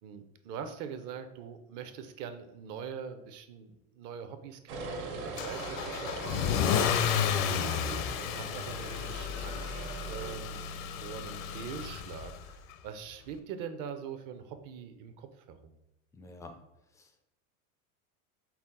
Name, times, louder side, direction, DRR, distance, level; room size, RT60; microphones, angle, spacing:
voice 1, 0.0-6.6 7.1-8.1 8.3-15.8, right 7 dB, 45° right, 9 dB, 0.6 m, -43 dB
sound 1, 4.7-10.3, right 3 dB, 65° right, 1.2 m, -41 dB
Car / Engine starting / Accelerating revving vroom, 5.4-12.5, left 8 dB, 65° left, 0.6 m, -32 dB
voice 2, 16.1-17.2, left 2 dB, 10° left, 5 dB, 0.3 m, -50 dB
5.6 x 2.1 x 3.7 m, 0.90 s
supercardioid pair, 105°, 43 cm